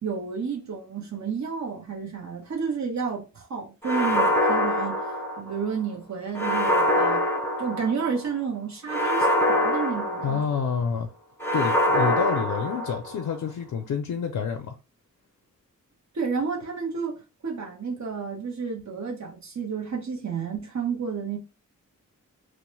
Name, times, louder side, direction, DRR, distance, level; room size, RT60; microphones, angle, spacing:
voice 1, 0.0-5.0 5.4-7.2 7.6-10.4 16.1-21.4, right 5 dB, 60° right, 0.9 m, -31 dB
sound 1, 3.8-5.7 6.4-8.2 8.9-10.8 11.4-13.3, left 1 dB, 5° left, 0.5 m, -24 dB
voice 2, 10.2-11.1 11.5-14.7, left 6 dB, 75° left, 0.5 m, -28 dB
3.0 x 2.0 x 3.1 m
wide cardioid pair, 140°, 32 cm